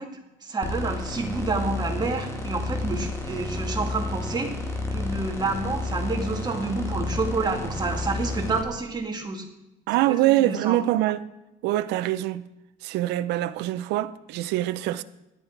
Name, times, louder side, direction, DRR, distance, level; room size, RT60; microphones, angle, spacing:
voice 1, 0.0-4.6 4.9-9.5 10.1-10.8, right 3 dB, 25° right, 2.2 m, -29 dB
sound 1, 0.6-8.6, left 2 dB, 15° left, 1.8 m, -31 dB
voice 2, 9.9-11.3 11.6-12.4 12.8-15.0, right 15 dB, 90° right, 0.5 m, -24 dB
13.5 x 10.5 x 4.6 m
cardioid pair, 110°, 17 cm